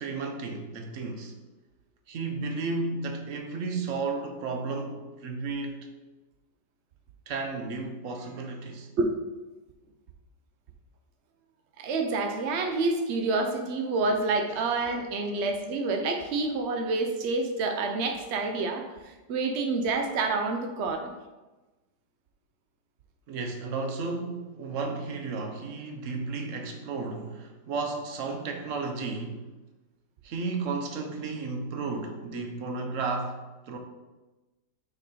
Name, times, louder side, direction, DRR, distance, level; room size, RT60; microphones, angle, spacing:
voice 1, 0.0-1.3 2.1-5.9 7.3-8.9 14.5-14.6 23.3-29.5 30.2-33.8, right 3 dB, 55° right, 4 dB, 0.9 m, -33 dB
voice 2, 11.8-21.1, right 3 dB, 80° right, 5 dB, 0.6 m, -28 dB
5.9 x 4.4 x 4.2 m, 1.1 s
omnidirectional pair, 2.0 m